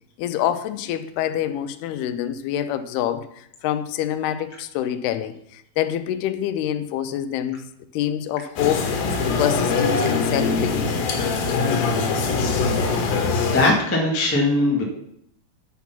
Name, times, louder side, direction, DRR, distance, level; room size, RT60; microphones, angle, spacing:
voice 1, 0.2-8.9 9.4-11.1, left 11 dB, 90° left, 2.7 m, -26 dB
sound 1, 8.6-13.7, left 4 dB, 70° left, 2.9 m, -22 dB
voice 2, 13.4-14.8, left 2 dB, 20° left, 0.3 m, -20 dB
9.4 x 5.9 x 5.8 m
omnidirectional pair, 4.5 m